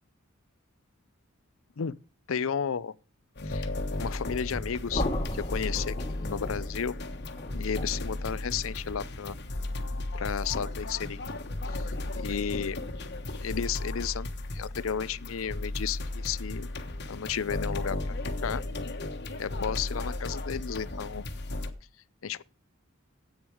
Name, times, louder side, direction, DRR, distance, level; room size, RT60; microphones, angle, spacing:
voice 1, 2.3-2.9 3.4-3.7 4.0-5.0 5.3-6.9 7.5-9.4 10.1-11.2 11.7-12.8 13.4-16.7 17.1-18.0 18.4-18.6 19.4-21.2 22.2-22.4, left 7 dB, 75° left, 0.5 m, -33 dB
sound 1, 3.4-21.7, left 2 dB, 55° left, 1.3 m, -35 dB
sound 2, 4.9-10.8, left 1 dB, 30° left, 1.5 m, -37 dB
10.5 x 8.8 x 4.8 m
head